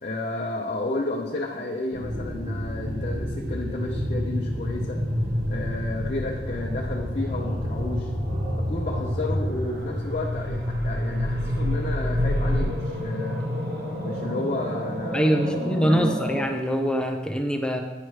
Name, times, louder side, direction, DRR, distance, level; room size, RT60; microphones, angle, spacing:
voice 1, 0.0-5.0 5.5-8.1 8.5-13.5 14.0-15.3 15.5-16.0, left 2 dB, 45° left, -2 dB, 0.7 m, -32 dB
sound 1, 1.9-16.4, equal, 65° right, 1.2 m, -29 dB
sound 2, 4.9-12.7, equal, 80° right, 0.8 m, -34 dB
voice 2, 15.1-17.8, equal, 5° left, 3 dB, 0.5 m, -24 dB
9.2 x 5.8 x 3.2 m, 1.2 s
head